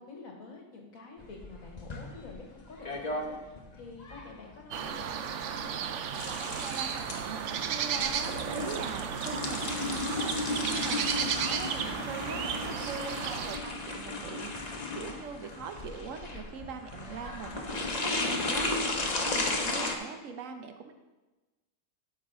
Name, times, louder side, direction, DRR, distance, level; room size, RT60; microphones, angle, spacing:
voice 1, 0.0-5.4, left 3 dB, 55° left, 1 dB, 1.4 m, -48 dB
sound 1, 1.2-19.9, left 2 dB, 35° left, 0.7 m, -35 dB
sound 2, 4.7-13.6, right 7 dB, 70° right, 0.7 m, -34 dB
voice 2, 6.3-20.9, right 5 dB, 55° right, 7 dB, 1.0 m, -42 dB
12.5 x 5.7 x 3.7 m, 1.1 s
omnidirectional pair, 1.8 m